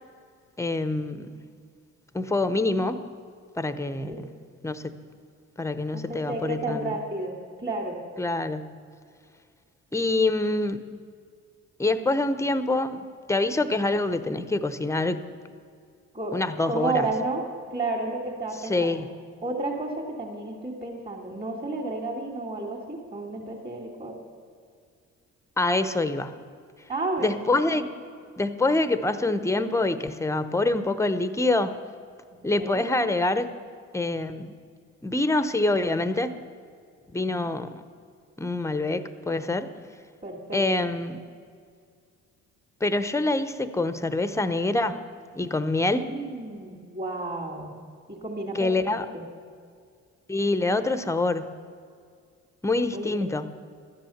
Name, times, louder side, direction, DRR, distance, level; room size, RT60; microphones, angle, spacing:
voice 1, 0.6-1.3 2.1-3.0 3.6-4.3 4.6-5.0 5.6-7.0 8.2-8.6 9.9-10.8 11.8-13.0 13.3-15.2 16.3-17.1 18.6-19.1 25.6-26.3 27.2-27.9 28.4-31.7 32.4-33.5 33.9-34.5 35.0-36.3 37.1-37.8 38.4-39.7 40.5-41.2 42.8-45.0 45.3-46.1 48.5-49.1 50.3-51.5 52.6-53.5, left 2 dB, 10° left, 12 dB, 0.8 m, -25 dB
voice 2, 3.9-4.2 5.9-8.0 16.1-17.4 17.7-19.0 19.4-24.2 26.9-27.8 32.3-32.8 37.2-37.5 40.2-40.9 45.9-47.7 48.1-49.2 52.9-53.3, right 2 dB, 30° right, -5 dB, 2.8 m, -32 dB
13.5 x 10.0 x 7.2 m, 2.2 s
cardioid pair, 90°, 30 cm